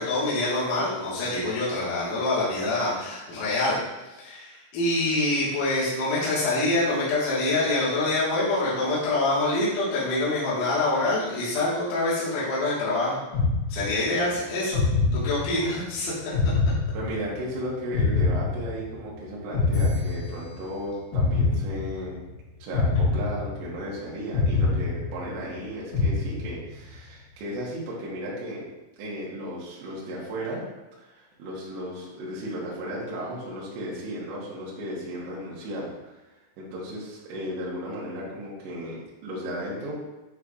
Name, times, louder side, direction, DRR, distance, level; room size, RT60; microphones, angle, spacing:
voice 1, 0.0-3.8 4.2-13.2 13.7-14.8 15.1-16.1, left 2 dB, 60° left, -9 dB, 2.3 m, -25 dB
sound 1, 13.3-14.2 14.7-15.8 16.3-17.5 17.9-19.1 19.5-20.7 21.1-22.2 22.7-23.9 24.3-25.5 25.9-26.8, left 4 dB, 85° left, 4.4 m, -25 dB
voice 2, 16.9-22.2 22.6-28.7 29.0-30.6 31.0-36.2 36.6-40.0, equal, 70° right, -6 dB, 3.6 m, -35 dB
9.7 x 4.6 x 2.4 m, 1.1 s
omnidirectional pair, 5.6 m